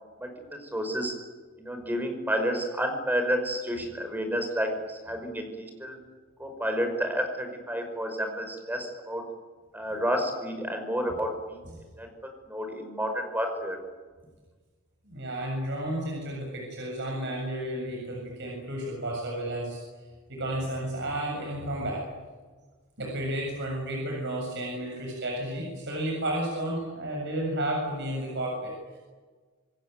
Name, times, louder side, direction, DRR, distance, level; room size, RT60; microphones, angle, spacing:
voice 1, 0.2-1.2 1.6-6.0 6.4-9.2 9.7-11.6 12.0-12.1 12.5-13.8, equal, 10° right, 5 dB, 5.6 m, -30 dB
voice 2, 15.1-19.8 20.3-22.0 23.0-29.0, right 1 dB, 55° right, -1 dB, 7.4 m, -32 dB
27.0 x 21.5 x 9.3 m, 1.4 s
head